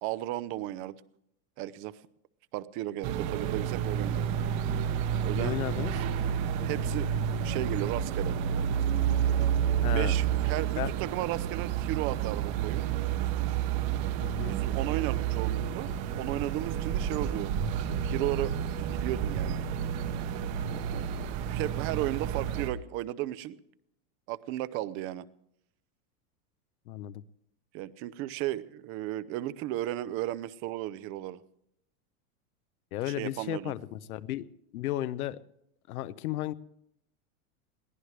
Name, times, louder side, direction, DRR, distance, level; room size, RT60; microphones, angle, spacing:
voice 1, 0.0-1.0 1.6-2.0 2.5-4.3 5.2-5.6 6.6-7.1 7.4-8.4 9.9-12.9 14.4-15.9 16.2-17.5 17.9-18.5 18.8-19.6 20.9-21.1 21.4-23.6 24.3-25.2 27.7-31.4 33.1-33.7, right 15 dB, 30° right, 17 dB, 0.6 m, -34 dB
sound 1, 3.0-22.7, right 9 dB, 45° right, 1.1 m, -30 dB
voice 2, 5.3-5.9 9.8-10.2 10.8-10.9 14.2-14.6 26.9-27.2 32.9-34.5 34.7-35.4 35.9-36.5, left 14 dB, 90° left, 14 dB, 0.9 m, -34 dB
22.0 x 16.0 x 3.3 m, 0.75 s
supercardioid pair, 160°, 42 cm